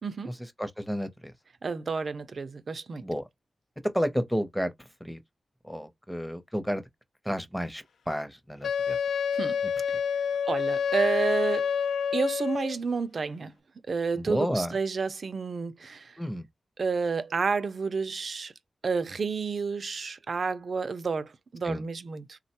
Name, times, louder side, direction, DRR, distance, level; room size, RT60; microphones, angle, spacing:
voice 1, 0.0-0.3 1.6-3.0 9.3-9.6 10.5-11.7 12.1-13.5 13.9-16.2 16.8-18.5 18.8-22.4, right 4 dB, 55° right, 0.4 m, -30 dB
voice 2, 0.6-1.3 3.0-3.2 3.9-4.7 5.0-5.2 5.6-6.8 7.3-9.0 14.2-14.8 16.2-16.4 21.6-21.8, equal, 5° left, 0.6 m, -31 dB
Wind instrument woodwind instrument, 8.6-12.8, left 7 dB, 90° left, 0.4 m, -28 dB
3.5 x 2.1 x 2.8 m
wide cardioid pair, 90°, 0 cm